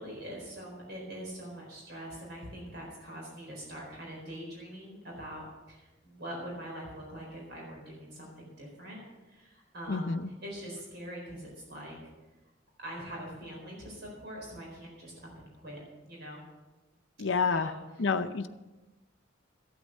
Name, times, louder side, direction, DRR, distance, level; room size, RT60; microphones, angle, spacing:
voice 1, 0.0-9.0 9.3-12.0 12.8-15.8 16.1-16.4 17.5-18.1, equal, 55° right, -2 dB, 4.2 m, -43 dB
voice 2, 9.9-10.3 17.2-17.7 18.0-18.5, left 4 dB, 65° left, 8 dB, 0.6 m, -28 dB
13.5 x 8.8 x 6.4 m, 1.1 s
head